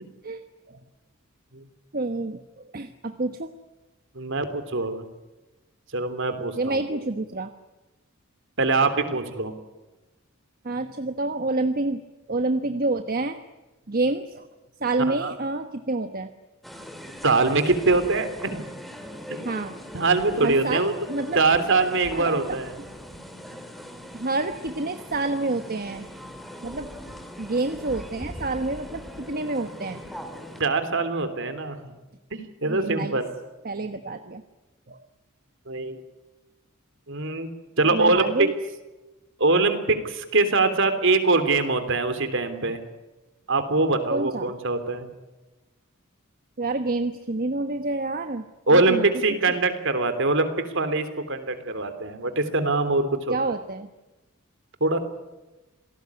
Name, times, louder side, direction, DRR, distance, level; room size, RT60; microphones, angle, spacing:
voice 1, 0.2-0.8 1.9-3.5 6.6-7.5 10.6-12.0 12.3-13.4 13.9-14.5 14.8-16.3 19.4-19.7 20.4-21.4 22.1-22.6 24.1-26.1 26.6-26.9 27.4-30.0 32.6-33.2 33.6-34.4 34.9-35.0 37.9-38.5 44.1-44.5 46.6-48.5 48.7-49.1 53.3-53.9, right 2 dB, 45° right, 8 dB, 1.2 m, -28 dB
voice 2, 4.1-5.0 5.9-6.8 8.6-9.5 15.1-15.3 17.2-18.6 19.3-19.4 19.9-20.9 21.3-22.7 30.6-31.8 32.3-33.3 35.7-36.0 37.1-37.5 37.8-38.2 39.4-42.8 43.5-45.1 48.7-53.3 54.8-55.0, right 3 dB, 60° right, 10 dB, 3.3 m, -23 dB
sound 1, 16.6-30.6, equal, ahead, 2.8 m, -40 dB
27.5 x 18.5 x 9.7 m, 1.1 s
head